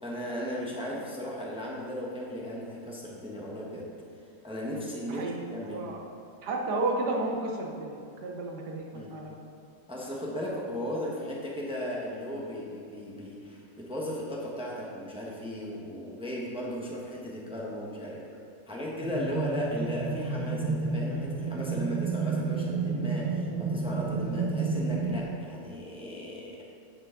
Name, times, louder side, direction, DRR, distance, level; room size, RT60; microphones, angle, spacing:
voice 1, 0.0-3.9 4.4-5.9 8.9-9.1 9.9-18.3 18.7-26.6, equal, 5° right, -4 dB, 0.9 m, -36 dB
voice 2, 5.6-6.0 6.4-9.4, right 2 dB, 65° right, 0 dB, 1.6 m, -32 dB
sound 1, 19.0-25.3, right 4 dB, 85° right, 1.6 m, -31 dB
9.0 x 6.8 x 3.9 m, 2.4 s
omnidirectional pair, 2.0 m